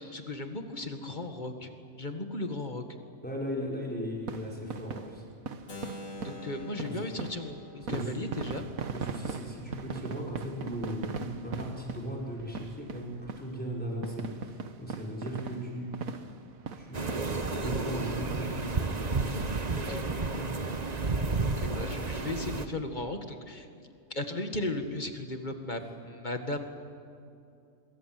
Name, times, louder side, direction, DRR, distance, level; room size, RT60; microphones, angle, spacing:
voice 1, 0.0-1.7 2.0-2.8 6.2-8.6 19.8-20.0 21.1-21.2 21.6-26.7, left 2 dB, 35° left, 6 dB, 2.0 m, -36 dB
voice 2, 3.2-5.2 6.8-6.9 7.9-8.5 8.9-16.0 16.8-18.6, equal, 5° left, -3 dB, 5.8 m, -37 dB
sound 1, 4.2-18.1 18.3-18.5 18.9-19.0 19.4-19.6 19.9-20.8 21.3-21.4 21.5-21.6, right 5 dB, 85° right, 1.7 m, -40 dB
Keyboard (musical), 5.7-11.5, left 1 dB, 75° left, 2.8 m, -48 dB
sound 2, 16.9-22.7, right 3 dB, 30° right, 1.3 m, -31 dB
26.0 x 23.5 x 7.8 m, 2.6 s
omnidirectional pair, 1.4 m